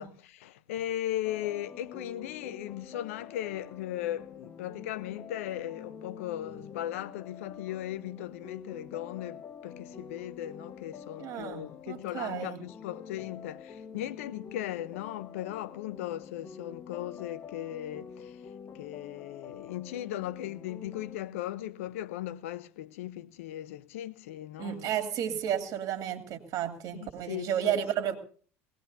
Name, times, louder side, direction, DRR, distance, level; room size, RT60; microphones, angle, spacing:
voice 1, 0.0-18.4 18.7-24.9 27.0-27.7, left 13 dB, 80° left, 0.8 m, -37 dB
sound 1, 1.2-21.2, left 7 dB, 35° left, 1.3 m, -47 dB
voice 2, 11.2-12.7 24.6-28.2, right 10 dB, 55° right, 2.6 m, -32 dB
21.0 x 18.0 x 2.7 m
hypercardioid pair, 75°, 7 cm